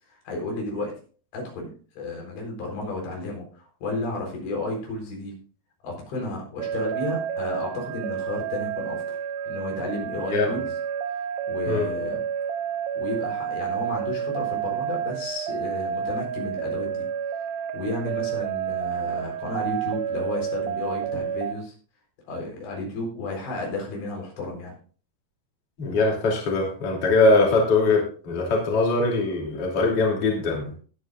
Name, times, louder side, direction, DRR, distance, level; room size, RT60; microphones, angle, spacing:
voice 1, 0.1-0.9 1.3-1.7 2.0-5.4 5.8-9.0 9.5-10.6 11.5-12.2 13.0-17.1 17.7-21.7 22.3-24.7, left 2 dB, 80° left, 0 dB, 6.4 m, -32 dB
sound 1, 6.6-21.6, right 9 dB, 85° right, 2.2 m, -30 dB
voice 2, 25.8-30.7, left 3 dB, 35° left, -1 dB, 3.5 m, -22 dB
20.0 x 8.9 x 2.5 m, 0.40 s
omnidirectional pair, 5.1 m